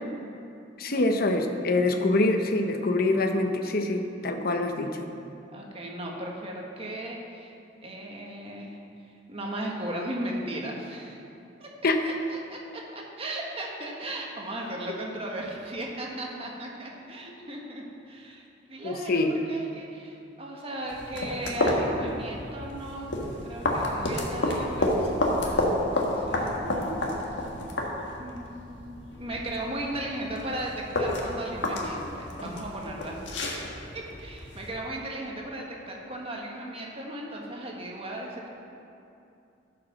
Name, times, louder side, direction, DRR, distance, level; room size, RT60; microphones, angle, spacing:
voice 1, 0.8-5.1 11.8-12.0 18.8-19.4, left 2 dB, 55° left, 5 dB, 0.9 m, -25 dB
voice 2, 4.6-5.0 5.5-7.5 7.8-8.8 9.3-11.2 11.6-23.1 23.4-27.0 28.2-38.5, right 1 dB, 30° right, -1 dB, 1.5 m, -37 dB
sound 1, 20.9-34.7, left 1 dB, 70° left, 1.6 m, -30 dB
13.5 x 5.9 x 6.1 m, 2.7 s
head